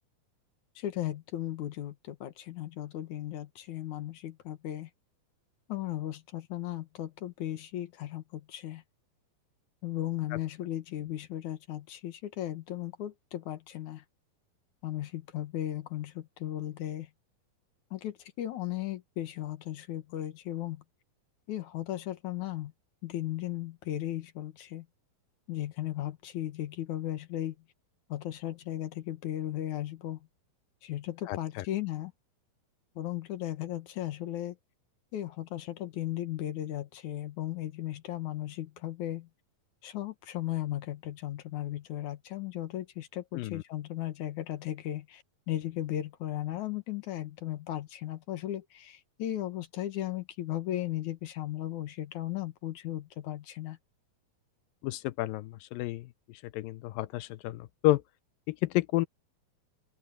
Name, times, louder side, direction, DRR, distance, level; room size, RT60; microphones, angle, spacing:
voice 1, 0.8-4.9 5.7-8.8 9.8-14.0 14.8-17.1 17.9-20.8 21.5-22.7 23.0-24.9 25.5-27.5 28.1-30.2 30.8-32.1 33.0-34.6 35.1-39.3 39.8-53.8, left 13 dB, 60° left, 2.4 m, -36 dB
voice 2, 31.3-31.6 43.3-43.6 54.8-56.1 56.5-58.0 58.5-59.1, left 17 dB, 80° left, 2.2 m, -30 dB
open air
omnidirectional pair, 4.4 m